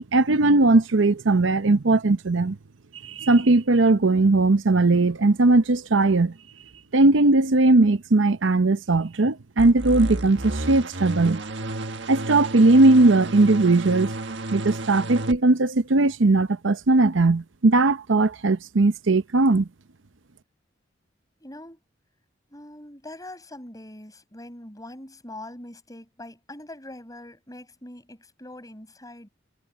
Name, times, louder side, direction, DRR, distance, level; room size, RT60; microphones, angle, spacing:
voice 1, 0.0-2.6 3.0-6.3 6.9-11.4 12.1-14.1 14.5-19.7, right 2 dB, 85° right, 0.8 m, -19 dB
sound 1, 9.6-15.4, right 2 dB, 70° right, 1.6 m, -32 dB
voice 2, 21.4-21.8 22.5-29.3, left 1 dB, 20° left, 5.4 m, -42 dB
head